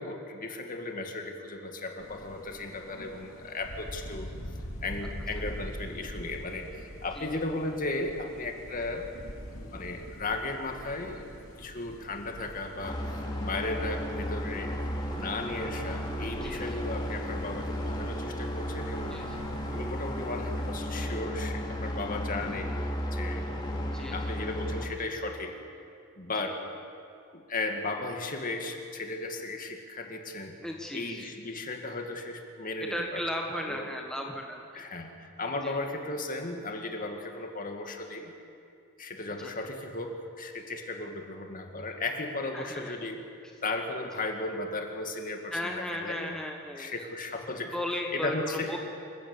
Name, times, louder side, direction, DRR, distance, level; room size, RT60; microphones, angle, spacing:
voice 1, 0.0-4.3 4.8-9.1 9.7-11.3 11.6-13.0 13.4-14.9 15.2-19.2 19.7-22.8 23.1-23.5 24.1-25.5 26.2-26.6 27.3-30.6 30.9-33.2 33.6-33.9 34.7-38.3 39.0-43.2 43.6-45.6 46.0-46.3 46.8-47.8 48.1-48.8, left 2 dB, 40° left, 3 dB, 2.3 m, -35 dB
Thunder, 2.0-21.2, equal, 80° left, 3.0 m, -45 dB
sound 1, 12.8-24.9, equal, 20° left, 2.5 m, -34 dB
voice 2, 16.4-16.8 19.0-19.4 23.8-24.3 26.4-26.5 30.6-31.3 32.8-34.8 35.6-35.8 39.4-39.5 42.5-43.0 45.5-47.1 47.7-48.8, left 1 dB, 5° left, 1 dB, 1.5 m, -36 dB
27.0 x 16.5 x 7.4 m, 2.5 s
head